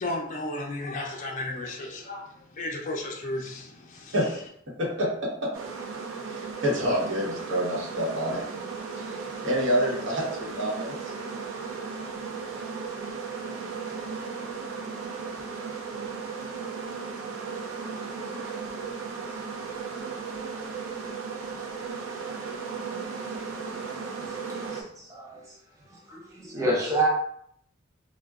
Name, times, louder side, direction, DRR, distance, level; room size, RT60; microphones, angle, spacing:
voice 1, 0.0-2.3 2.5-4.1, left 2 dB, 40° left, -1 dB, 0.4 m, -33 dB
sound 1, 5.5-24.8, right 5 dB, 90° right, 0.5 m, -36 dB
voice 2, 6.3-8.4 9.0-9.2 9.4-11.0 26.5-26.7, equal, 70° right, -3 dB, 0.9 m, -27 dB
voice 3, 24.4-25.6 25.9-27.1, right 2 dB, 15° right, -4 dB, 0.7 m, -29 dB
3.6 x 2.1 x 2.3 m, 0.70 s
head